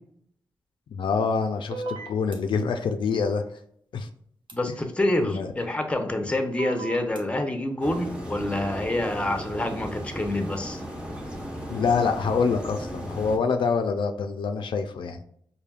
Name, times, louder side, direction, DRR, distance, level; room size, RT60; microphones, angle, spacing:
voice 1, 0.9-3.4 3.9-4.1 5.2-5.5 11.7-15.2, left 5 dB, 75° left, 6 dB, 0.4 m, -26 dB
sound 1, 1.7-2.4 4.5-4.6 6.6-7.2, right 3 dB, 75° right, 0.8 m, -35 dB
voice 2, 4.5-10.8, left 1 dB, 15° left, 5 dB, 0.6 m, -27 dB
sound 2, 7.8-13.4, equal, 10° right, 1.0 m, -36 dB
4.9 x 2.7 x 2.3 m, 0.66 s
cardioid pair, 90°, 8 cm